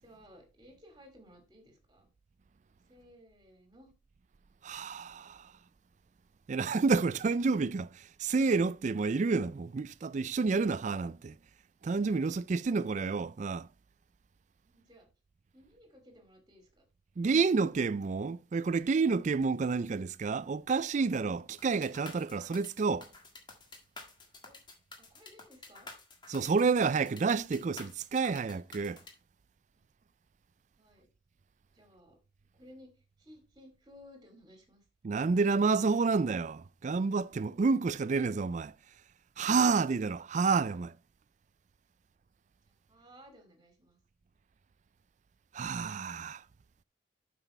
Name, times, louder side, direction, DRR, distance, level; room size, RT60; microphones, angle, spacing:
voice 1, 0.0-2.1 2.9-3.9 14.6-15.1 15.5-16.8 24.4-24.6 25.0-25.9 30.8-31.1 31.7-32.2 32.5-34.8 42.7-44.0, equal, 20° right, 2.4 m, -57 dB
voice 2, 4.6-5.4 6.5-11.3 11.8-13.7 17.2-23.1 26.3-29.0 35.0-38.7 39.4-40.9 45.5-46.4, right 4 dB, 40° right, 0.3 m, -29 dB
sound 1, 21.6-29.1, left 3 dB, 25° left, 1.7 m, -50 dB
8.0 x 6.0 x 4.3 m
head